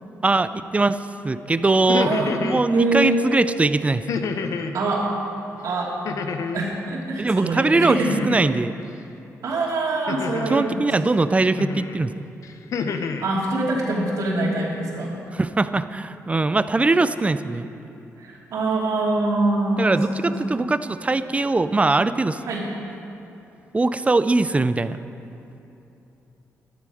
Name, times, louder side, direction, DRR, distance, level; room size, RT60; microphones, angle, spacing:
voice 1, 0.2-4.0 7.2-8.0 8.2-8.8 10.5-12.2 15.3-17.7 19.8-22.4 23.7-25.0, right 3 dB, 25° right, 13 dB, 0.5 m, -21 dB
sound 1, 1.7-2.7 4.1-4.8 6.1-6.7 8.1-8.6 10.1-10.7 11.6-12.0 12.4-13.3, left 5 dB, 70° left, 0.7 m, -28 dB
voice 2, 2.0-2.3 2.7-3.2 4.7-5.0 5.6-5.9 6.5-8.1 9.4-10.8 12.9-15.2 18.2-20.0 20.6-20.7 22.5-22.6, right 2 dB, 75° right, -4 dB, 2.8 m, -24 dB
12.5 x 12.0 x 5.0 m, 2.9 s
cardioid pair, 70°, 6 cm